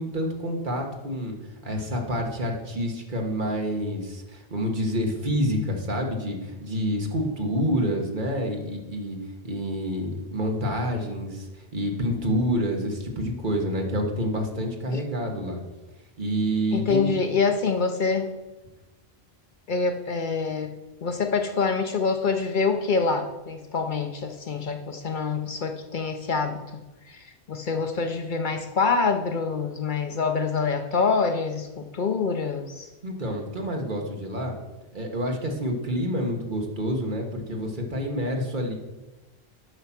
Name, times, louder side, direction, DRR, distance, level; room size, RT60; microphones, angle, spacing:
voice 1, 0.0-1.4 1.6-9.2 9.4-15.6 16.2-17.2 33.0-34.6 34.9-38.7, equal, 50° right, 2 dB, 1.4 m, -28 dB
voice 2, 16.7-18.3 19.7-20.7 21.0-32.9, left 4 dB, 55° left, 6 dB, 0.8 m, -26 dB
8.0 x 5.7 x 5.8 m, 1.1 s
omnidirectional pair, 1.1 m